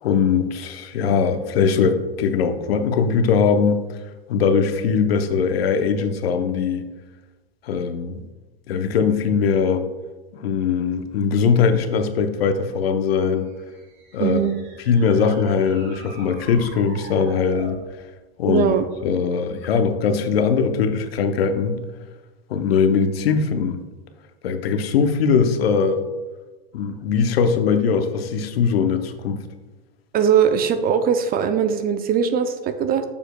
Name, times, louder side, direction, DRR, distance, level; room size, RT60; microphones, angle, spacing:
voice 1, 0.0-3.8 4.3-6.9 7.6-8.2 8.7-9.9 10.3-13.5 14.1-14.4 14.9-17.8 18.4-18.7 19.0-21.8 22.5-23.8 24.4-26.0 26.7-29.4, left 6 dB, 85° left, 8 dB, 0.8 m, -20 dB
sound 1, 13.5-17.9, right 4 dB, 50° right, 1.6 m, -42 dB
voice 2, 14.2-14.5 18.5-18.9 30.1-33.0, right 7 dB, 30° right, 9 dB, 0.5 m, -20 dB
7.0 x 7.0 x 2.2 m, 1.2 s
hypercardioid pair, 100°, 30 cm